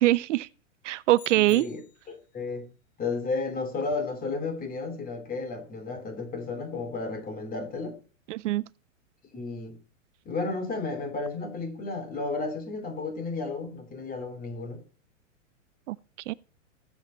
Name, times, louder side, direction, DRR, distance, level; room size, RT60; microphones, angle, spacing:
voice 1, 0.0-0.5 0.8-1.7 8.3-8.7 15.9-16.0 16.3-16.4, right 16 dB, 65° right, 0.5 m, -23 dB
sound 1, 1.1-2.2, left 12 dB, 55° left, 2.3 m, -50 dB
voice 2, 1.3-1.8 2.1-2.7 3.0-8.0 9.3-9.8 10.2-14.8, left 3 dB, 20° left, 2.8 m, -33 dB
15.5 x 8.1 x 4.3 m
hypercardioid pair, 120°, 38 cm